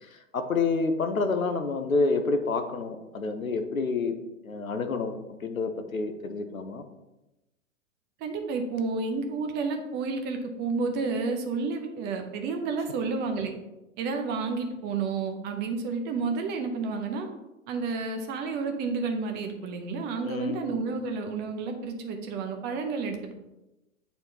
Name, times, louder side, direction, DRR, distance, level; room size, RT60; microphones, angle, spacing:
voice 1, 0.0-4.1 4.4-5.1 5.4-6.8 20.2-20.6, left 4 dB, 85° left, 7 dB, 0.8 m, -28 dB
voice 2, 8.2-13.5 14.0-17.3 17.7-23.4, right 4 dB, 25° right, 5 dB, 0.7 m, -30 dB
8.8 x 4.3 x 2.8 m, 0.98 s
figure-of-eight pair, 100°, 40 cm